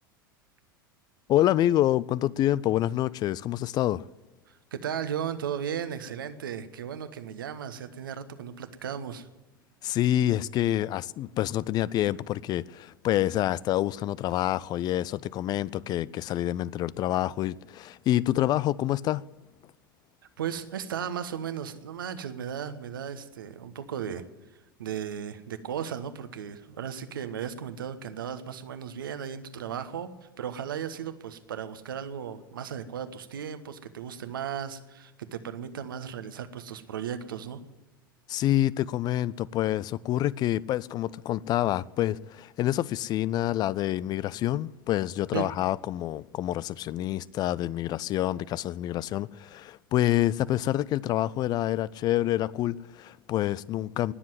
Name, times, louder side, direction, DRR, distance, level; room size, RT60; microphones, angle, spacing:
voice 1, 1.3-4.0 9.8-19.2 38.3-54.1, left 13 dB, 35° left, 0.4 m, -27 dB
voice 2, 4.5-9.3 20.4-24.2 24.8-30.1 30.4-37.6 45.3-45.5, right 8 dB, 70° right, 1.2 m, -35 dB
20.0 x 7.5 x 9.5 m
figure-of-eight pair, 85°, 12 cm